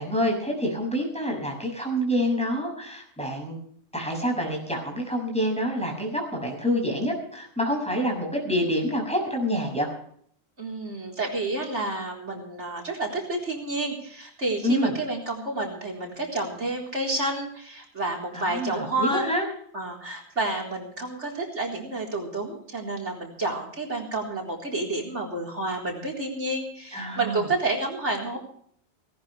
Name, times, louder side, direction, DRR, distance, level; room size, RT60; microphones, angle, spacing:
voice 1, 0.0-3.6 3.9-9.9 14.6-15.0 18.3-19.5 26.9-27.5, equal, 5° left, -1 dB, 6.5 m, -27 dB
voice 2, 10.6-19.2 19.7-28.4, right 2 dB, 90° right, -1 dB, 4.4 m, -30 dB
19.0 x 18.0 x 3.3 m, 0.62 s
omnidirectional pair, 1.2 m